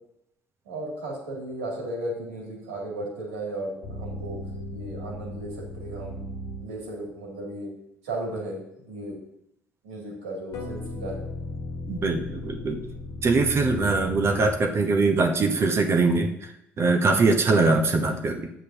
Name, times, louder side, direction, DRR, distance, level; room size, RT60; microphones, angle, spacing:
voice 1, 0.6-4.4 4.7-6.2 6.6-7.7 8.0-9.2 9.8-11.3, right 1 dB, 70° right, -2 dB, 2.9 m, -35 dB
sound 1, 3.8-7.0 10.5-15.1, left 1 dB, 50° left, 1.3 m, -36 dB
voice 2, 11.9-12.8 13.2-18.5, right 3 dB, 40° right, 4 dB, 1.1 m, -22 dB
11.5 x 8.2 x 2.9 m, 0.79 s
figure-of-eight pair, 55°, 7 cm